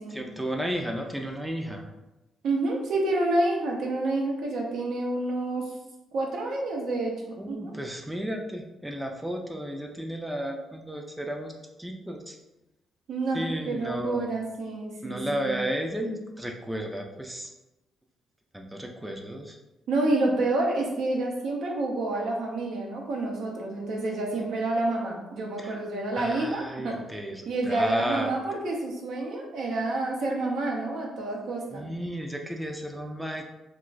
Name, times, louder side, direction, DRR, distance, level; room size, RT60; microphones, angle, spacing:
voice 1, 0.1-1.9 7.4-11.5 11.8-12.4 13.3-14.2 15.0-17.5 18.5-19.6 25.6-25.8 26.2-28.3 31.7-33.4, equal, 5° right, 2 dB, 0.4 m, -33 dB
voice 2, 2.4-5.7 6.1-7.7 13.1-15.6 19.9-27.0 27.5-31.9, right 2 dB, 75° right, -1 dB, 0.7 m, -28 dB
2.4 x 2.2 x 3.9 m, 0.98 s
cardioid pair, 85°, 0 cm